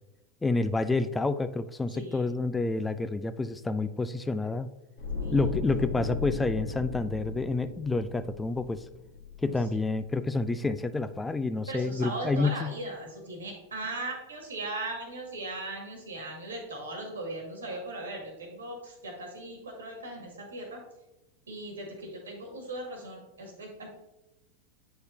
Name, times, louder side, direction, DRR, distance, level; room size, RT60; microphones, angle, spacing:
voice 1, 0.4-4.7 5.3-8.8 9.4-12.7, left 3 dB, 15° left, 12 dB, 0.3 m, -29 dB
voice 2, 1.9-2.3 5.2-5.4 9.4-9.6 11.7-20.8 21.5-23.9, right 2 dB, 85° right, 1 dB, 1.8 m, -38 dB
sound 1, 5.0-10.1 10.3-10.6, left 4 dB, 75° left, 1.9 m, -36 dB
8.1 x 4.8 x 2.7 m, 0.96 s
hypercardioid pair, 95°, 0 cm